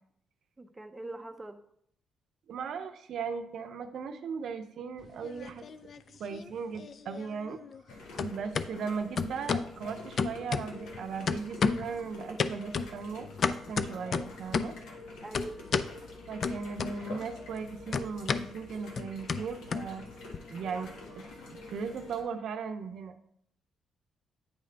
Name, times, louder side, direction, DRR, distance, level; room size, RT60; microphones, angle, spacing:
voice 1, 0.6-1.6 6.1-6.2 15.2-15.7, right 2 dB, 15° right, 6 dB, 0.6 m, -43 dB
voice 2, 2.5-5.7 6.2-7.6 8.2-14.7 16.3-20.1 20.5-23.2, right 5 dB, 65° right, 8 dB, 0.6 m, -38 dB
sound 1, 5.0-6.0 6.3-7.9 8.2-8.7 9.2-9.7 10.2-11.0 11.3-11.9 12.4-14.8 15.3-15.9 16.4-17.3 17.5-20.4, left 5 dB, 50° left, 0.4 m, -32 dB
sound 2, 7.9-22.2, left 2 dB, 80° left, 1.4 m, -47 dB
9.5 x 3.3 x 3.8 m, 0.68 s
cardioid pair, 90°, 0 cm